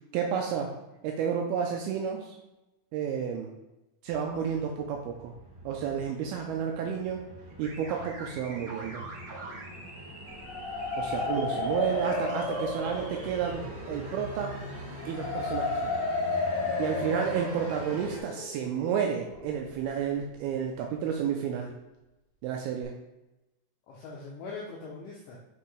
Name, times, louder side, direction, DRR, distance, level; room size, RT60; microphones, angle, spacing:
voice 1, 0.1-0.7 1.0-2.4 2.9-3.5 4.0-5.3 5.7-7.3 7.6-9.0 11.0-14.6 15.0-15.9 16.8-21.7 22.4-22.9, right 7 dB, 85° right, 2 dB, 2.4 m, -31 dB
sound 1, 4.1-18.2, right 1 dB, 65° right, 1.1 m, -44 dB
sound 2, 7.6-13.5, right 2 dB, 40° right, 1.7 m, -46 dB
sound 3, 10.3-20.1, left 3 dB, 65° left, 2.4 m, -33 dB
voice 2, 11.2-12.1 16.8-17.2 23.9-25.4, left 3 dB, 80° left, -3 dB, 1.9 m, -43 dB
6.0 x 5.4 x 3.2 m, 0.97 s
omnidirectional pair, 4.6 m